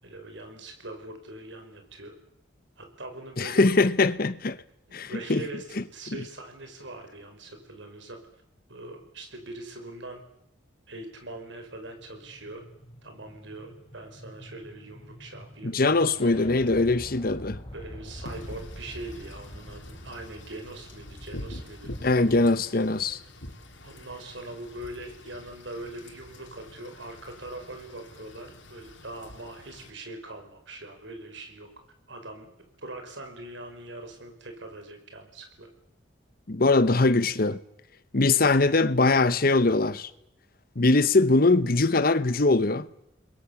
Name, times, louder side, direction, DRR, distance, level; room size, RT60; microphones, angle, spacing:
voice 1, 0.0-2.1 2.8-3.6 4.9-8.4 8.7-10.2 10.9-12.6 13.0-15.8 17.7-21.9 22.3-22.4 23.8-31.7 32.1-32.5 32.8-35.7, right 2 dB, 70° right, 5.2 m, -42 dB
voice 2, 3.4-4.6 4.9-5.4 15.6-17.6 22.0-23.2 36.5-37.6 38.1-40.1 40.8-42.9, left 3 dB, 50° left, 1.0 m, -22 dB
sound 1, 11.7-21.6, equal, 30° left, 3.3 m, -46 dB
Wind / Rain, 18.3-29.9, left 1 dB, 75° left, 4.0 m, -45 dB
29.5 x 21.5 x 7.2 m
head